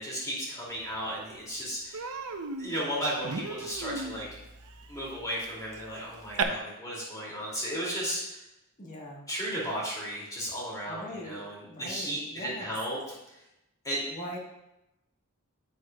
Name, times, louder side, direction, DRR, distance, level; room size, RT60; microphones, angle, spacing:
voice 1, 0.0-2.0 2.6-4.3 4.9-8.4 9.3-13.0 13.8-14.0, equal, 15° left, -6 dB, 2.6 m, -34 dB
Human voice, 0.9-1.0 1.3-1.5 1.9-6.4, right 4 dB, 85° right, 0.8 m, -37 dB
voice 2, 8.8-9.2 10.9-12.7 14.1-14.4, left 1 dB, 35° left, -2 dB, 1.4 m, -41 dB
10.0 x 8.4 x 2.4 m, 0.90 s
head